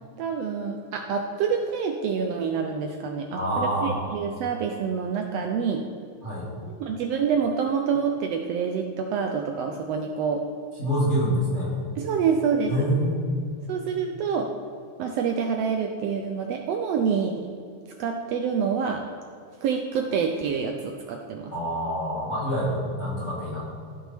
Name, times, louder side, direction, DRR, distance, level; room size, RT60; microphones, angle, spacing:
voice 1, 0.2-5.8 6.8-10.4 12.0-12.7 13.7-14.5 15.0-17.5 18.0-19.0 19.6-21.5, right 6 dB, 75° right, 3 dB, 1.5 m, -27 dB
voice 2, 3.3-4.0 6.2-6.5 10.8-11.7 12.7-13.6 21.5-23.6, equal, 25° left, -10 dB, 2.5 m, -26 dB
15.5 x 5.4 x 3.5 m, 2.4 s
omnidirectional pair, 3.4 m